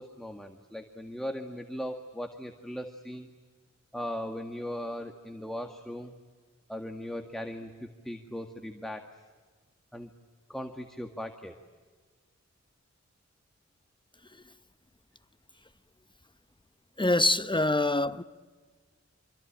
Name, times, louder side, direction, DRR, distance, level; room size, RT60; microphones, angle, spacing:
voice 1, 0.0-3.3 3.9-6.2 6.7-9.1 9.9-10.1 10.5-11.5, equal, ahead, 2.0 m, -38 dB
voice 2, 17.0-18.2, left 2 dB, 15° left, 1.0 m, -25 dB
26.5 x 25.0 x 9.0 m
wide cardioid pair, 50°, 29 cm